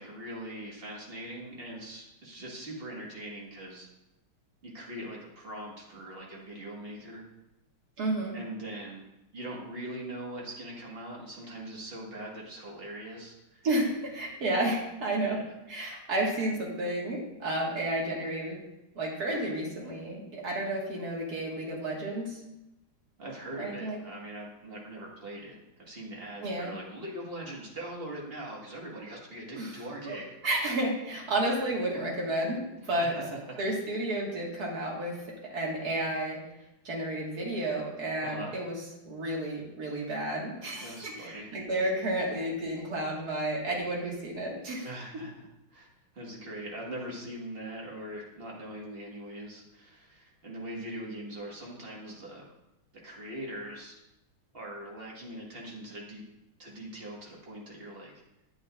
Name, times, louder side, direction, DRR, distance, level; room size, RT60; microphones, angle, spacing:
voice 1, 0.0-3.9 4.6-7.2 8.3-9.1 9.3-13.7 15.2-15.4 23.2-30.4 32.9-33.4 38.2-38.5 40.8-41.5 44.8-45.9 46.1-52.5 53.0-53.9 54.5-56.2 56.6-58.1, right 1 dB, 30° right, -3 dB, 1.5 m, -41 dB
voice 2, 8.0-8.4 13.6-15.4 15.7-18.6 19.0-22.4 23.6-24.0 26.4-26.7 29.5-29.8 30.1-30.2 30.4-33.1 33.6-35.2 35.4-36.4 36.8-38.8 39.1-44.9, right 1 dB, 50° right, -2 dB, 2.0 m, -31 dB
8.8 x 8.7 x 2.4 m, 0.90 s
omnidirectional pair, 2.3 m